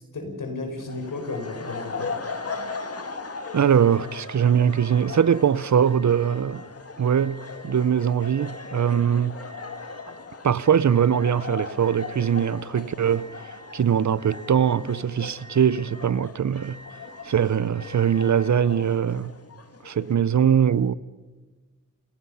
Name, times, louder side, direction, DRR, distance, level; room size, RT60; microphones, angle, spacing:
voice 1, 0.1-2.2, left 2 dB, 75° left, 5.0 m, -33 dB
sound 1, 0.8-20.1, left 4 dB, 50° left, 1.9 m, -38 dB
sound 2, 1.3-2.0 2.3-3.2 3.5-4.3 4.7-5.5 5.9-6.7 7.0-7.9 8.2-9.1 9.4-10.3 10.6-11.5 11.8-12.7 13.0-13.8 14.2-15.0 15.4-16.2 16.5-18.6, equal, 15° left, 7.3 m, -49 dB
voice 2, 3.5-6.6 7.0-9.4 10.4-13.3 13.7-16.8 17.2-19.3 19.8-20.9, right 8 dB, 65° right, 0.7 m, -21 dB
29.0 x 17.0 x 5.6 m
cardioid pair, 60°, 32 cm